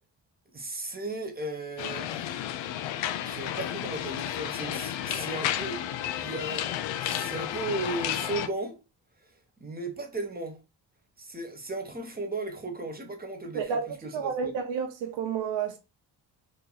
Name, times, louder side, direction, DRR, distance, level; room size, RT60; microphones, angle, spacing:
voice 1, 0.5-2.4 3.2-8.8 9.6-10.6 11.2-14.5, right 2 dB, 20° right, 1.2 m, -36 dB
sound 1, 1.8-8.5, left 11 dB, 85° left, 0.5 m, -32 dB
voice 2, 14.1-15.8, right 6 dB, 80° right, 0.9 m, -30 dB
3.0 x 2.6 x 3.9 m
cardioid pair, 75°, 44 cm